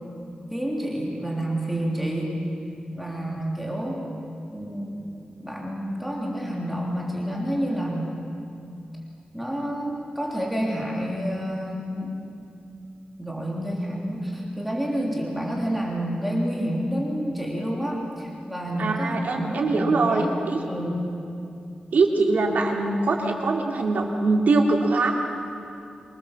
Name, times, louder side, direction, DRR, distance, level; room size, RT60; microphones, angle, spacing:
voice 1, 0.5-2.4 2.9-4.0 4.5-5.0 5.4-8.2 9.3-12.2 13.2-20.4 20.7-21.1, equal, ahead, -3 dB, 3.4 m, -29 dB
voice 2, 18.8-20.6 21.9-25.1, right 3 dB, 75° right, 1 dB, 2.8 m, -22 dB
25.0 x 19.5 x 7.3 m, 2.6 s
wide cardioid pair, 135°, 3 cm